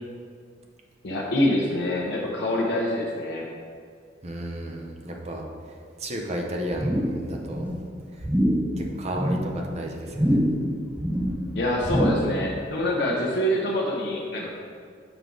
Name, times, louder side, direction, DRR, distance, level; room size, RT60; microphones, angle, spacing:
voice 1, 1.0-3.5 11.5-14.5, left 1 dB, 65° left, -4 dB, 0.8 m, -25 dB
voice 2, 4.2-5.4 6.0-7.7 8.8-10.4, right 1 dB, 35° right, 1 dB, 0.8 m, -33 dB
sound 1, 6.7-7.2 7.5-7.8 8.2-8.7 9.1-9.5 10.1-10.7 10.9-11.4 11.8-12.4 12.7-12.8, equal, 5° right, 0.5 m, -24 dB
7.1 x 4.7 x 3.9 m, 2.2 s
head